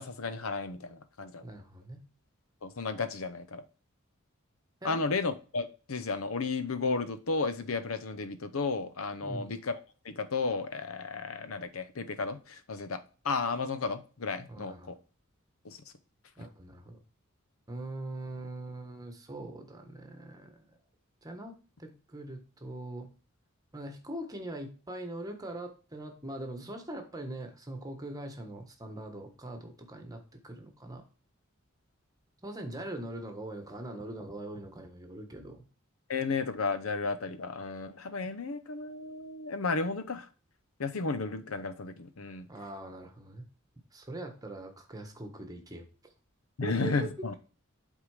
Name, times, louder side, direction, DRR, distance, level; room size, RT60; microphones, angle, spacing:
voice 1, 0.0-1.4 2.6-3.6 4.8-9.7 10.0-13.0 13.2-15.0 15.6-15.8 36.1-40.3 40.8-42.5 46.6-47.3, left 4 dB, 85° left, 11 dB, 0.8 m, -33 dB
voice 2, 1.4-2.0 4.8-5.0 9.2-9.6 14.5-14.9 16.4-17.0 17.7-20.6 21.2-21.5 21.8-23.1 23.7-31.0 32.4-35.6 42.5-43.5 43.9-45.9 46.6-47.1, right 1 dB, 20° right, 5 dB, 1.3 m, -42 dB
8.2 x 3.7 x 4.9 m, 0.36 s
head